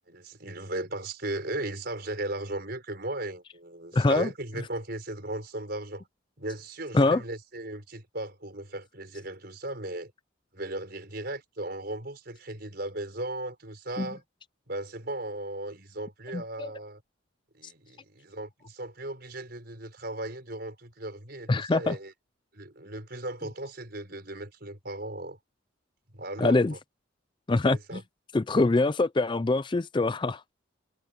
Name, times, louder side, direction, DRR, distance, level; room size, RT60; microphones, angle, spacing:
voice 1, 0.1-6.1 6.4-10.1 10.5-14.2 14.7-17.0 17.5-22.1 22.5-25.4 26.1-26.8 27.7-28.0, right 1 dB, 50° right, 5.7 m, -37 dB
voice 2, 3.9-4.3 6.9-7.2 14.0-14.1 16.3-16.7 21.5-22.0 26.4-26.7 27.5-28.0 28.3-30.4, left 2 dB, 25° left, 0.4 m, -24 dB
head